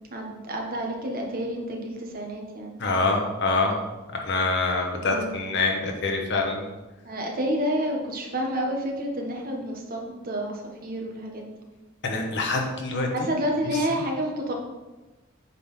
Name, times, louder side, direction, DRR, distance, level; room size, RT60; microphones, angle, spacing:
voice 1, 0.1-2.7 5.1-5.3 7.0-11.6 13.1-14.5, equal, 45° right, 1 dB, 1.4 m, -29 dB
voice 2, 2.8-3.8 4.1-6.6 12.0-13.3 13.9-14.0, left 3 dB, 60° left, 2 dB, 1.3 m, -25 dB
8.1 x 4.1 x 5.6 m, 1.1 s
head